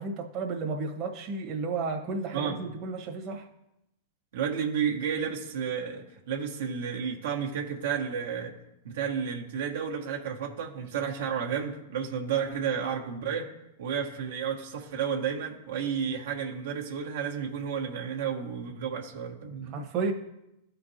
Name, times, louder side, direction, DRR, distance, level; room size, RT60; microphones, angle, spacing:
voice 1, 0.0-3.5 19.7-20.1, right 4 dB, 40° right, 1 dB, 1.3 m, -32 dB
voice 2, 4.3-8.6 8.8-13.5 13.8-19.8, right 7 dB, 70° right, 0 dB, 1.3 m, -32 dB
13.5 x 4.5 x 2.8 m, 0.88 s
hypercardioid pair, 105°, 0 cm